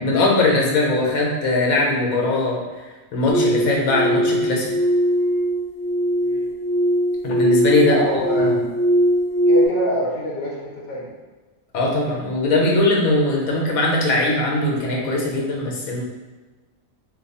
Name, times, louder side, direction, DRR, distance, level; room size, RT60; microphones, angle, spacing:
voice 1, 0.0-2.6 3.1-4.7 7.2-8.0 8.4-8.5 11.7-16.0, left 2 dB, 85° left, -2 dB, 1.2 m, -20 dB
sound 1, 3.3-9.7, equal, 80° right, 1.2 m, -20 dB
voice 2, 7.8-8.6 9.5-11.1, left 1 dB, 50° left, -4 dB, 0.9 m, -26 dB
2.9 x 2.3 x 4.0 m, 1.3 s
omnidirectional pair, 1.5 m